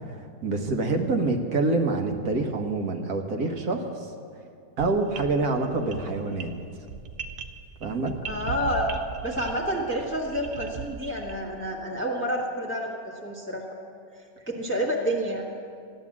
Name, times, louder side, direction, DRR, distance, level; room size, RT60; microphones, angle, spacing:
voice 1, 0.4-3.9 4.8-6.5 7.8-8.1, right 3 dB, 60° right, 4 dB, 1.6 m, -26 dB
sound 1, 4.8-11.5, right 6 dB, 80° right, 0.4 m, -39 dB
voice 2, 8.3-8.9 9.2-13.6 14.5-15.4, equal, 5° left, -2 dB, 1.4 m, -29 dB
15.0 x 10.5 x 7.3 m, 2.3 s
omnidirectional pair, 1.9 m